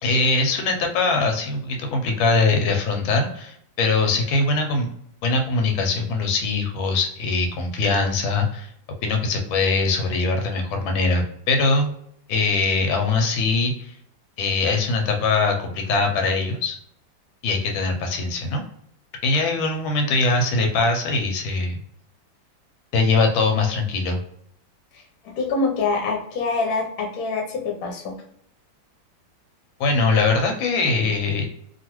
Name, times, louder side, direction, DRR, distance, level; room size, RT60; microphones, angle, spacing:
voice 1, 0.0-4.9 5.2-8.7 9.0-11.9 12.3-13.9 14.4-16.8 17.4-18.6 19.2-21.8 22.9-24.2 29.8-31.5, left 3 dB, 90° left, 3 dB, 1.4 m, -22 dB
voice 2, 24.9-28.2, left 3 dB, 65° left, 1 dB, 1.0 m, -25 dB
3.0 x 2.5 x 2.9 m, 0.69 s
omnidirectional pair, 2.1 m